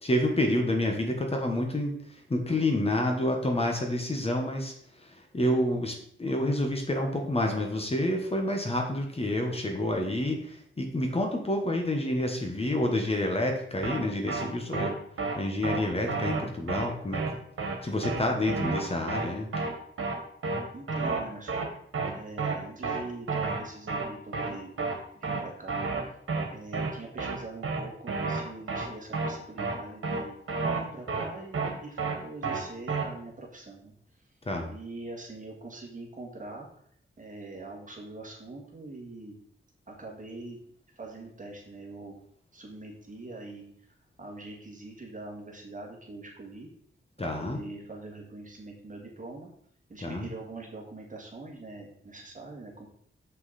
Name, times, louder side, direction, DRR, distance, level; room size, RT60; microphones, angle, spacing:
voice 1, 0.0-15.0 15.3-17.4 17.8-19.6 34.4-34.7 47.2-47.6 50.0-50.3, left 1 dB, 30° left, 2 dB, 1.1 m, -29 dB
sound 1, 13.8-14.0 14.3-14.4 14.7-14.9 15.2-15.3 15.6-15.8 16.1-16.4 16.7-16.8 17.1-17.3 17.6-17.7 18.0-18.2 18.5-18.8 19.1-19.2 19.5-19.7 20.0-20.2 20.4-20.6 20.9-21.2 21.5-21.7 21.9-22.1 22.4-22.6 22.8-23.0 23.3-23.6 23.9-24.1 24.3-24.5 24.8-24.9 25.2-25.4 25.7-26.0 26.3-26.4 26.7-26.9 27.2-27.3 27.6-27.8 28.1-28.4 28.7-28.9 29.1-29.3 29.6-29.7 30.0-30.2 30.5-30.8 31.1-31.2 31.5-31.7 32.0-32.2 32.4-32.6 32.9-33.0, right 4 dB, 85° right, 1.6 m, -30 dB
voice 2, 20.7-21.7 22.1-24.7 25.1-25.8 26.5-30.4 30.7-33.9 34.7-36.7 37.2-39.4 39.9-40.6 41.0-42.2 42.5-43.7 44.2-46.7 47.2-49.5 49.9-52.9, right 2 dB, 40° right, -1 dB, 1.9 m, -43 dB
7.3 x 6.2 x 4.1 m, 0.64 s
wide cardioid pair, 155°, 21 cm